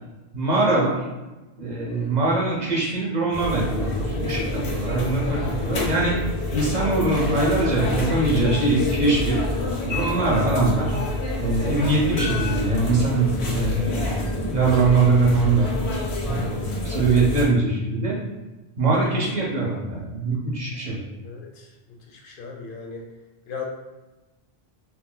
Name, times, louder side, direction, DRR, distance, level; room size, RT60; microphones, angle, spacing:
voice 1, 0.3-1.0 1.6-6.2 6.5-9.4 9.8-10.9 11.4-15.7 16.2-18.2 18.8-21.0, right 3 dB, 50° right, -3 dB, 0.7 m, -22 dB
voice 2, 1.9-2.3 11.6-11.9 19.0-19.3 20.8-23.0 23.5-23.6, left 5 dB, 60° left, 0 dB, 0.7 m, -39 dB
sound 1, 3.3-17.4, left 2 dB, 85° left, 1.0 m, -27 dB
2.7 x 2.0 x 3.7 m, 1.1 s
omnidirectional pair, 1.1 m